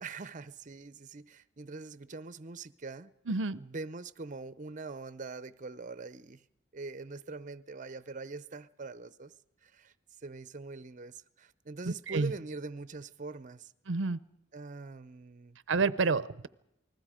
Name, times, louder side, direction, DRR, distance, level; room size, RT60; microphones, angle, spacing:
voice 1, 0.0-3.1 3.6-6.5 6.7-9.3 9.6-9.9 10.2-13.7 14.5-15.6, right 3 dB, 45° right, 0.7 m, -43 dB
voice 2, 3.3-3.6 12.1-12.3 13.9-14.2 15.7-16.5, right 4 dB, 90° right, 0.7 m, -29 dB
28.5 x 20.0 x 5.0 m
head